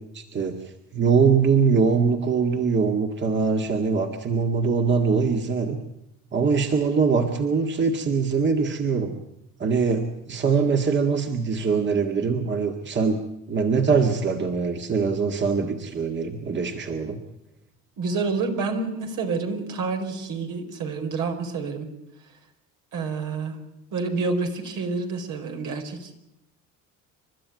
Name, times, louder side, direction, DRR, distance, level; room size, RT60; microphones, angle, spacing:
voice 1, 0.0-5.8 6.3-9.2 9.6-13.2 13.5-17.2, right 5 dB, 35° right, 4 dB, 1.9 m, -23 dB
voice 2, 18.0-21.9 22.9-23.6 23.9-26.2, right 4 dB, 75° right, 4 dB, 4.7 m, -28 dB
29.0 x 12.5 x 9.4 m, 0.84 s
cardioid pair, 115°, 31 cm